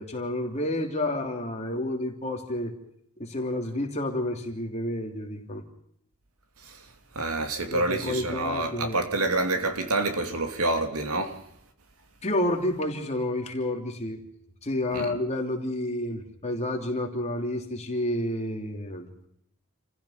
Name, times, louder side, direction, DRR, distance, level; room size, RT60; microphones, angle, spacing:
voice 1, 0.0-2.7 3.2-5.6 7.7-9.0 12.2-14.2 14.6-19.1, left 1 dB, 30° left, 3.2 m, -30 dB
voice 2, 7.1-11.4 14.9-15.1, right 2 dB, 80° right, 2.7 m, -27 dB
29.0 x 15.5 x 5.8 m
head